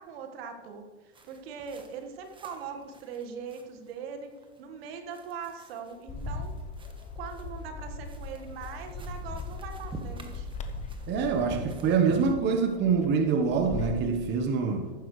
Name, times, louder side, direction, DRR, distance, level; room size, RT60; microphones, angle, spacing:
voice 1, 0.0-4.3 4.6-6.5 7.2-10.5, right 6 dB, 60° right, 5 dB, 1.8 m, -41 dB
sound 1, 1.1-12.3, right 1 dB, 15° right, 1.4 m, -47 dB
Bird, 6.1-14.1, left 3 dB, 20° left, 1.1 m, -39 dB
voice 2, 11.1-14.9, right 5 dB, 30° right, 6 dB, 1.3 m, -25 dB
14.5 x 12.0 x 3.3 m, 1.3 s
hypercardioid pair, 110°, 33 cm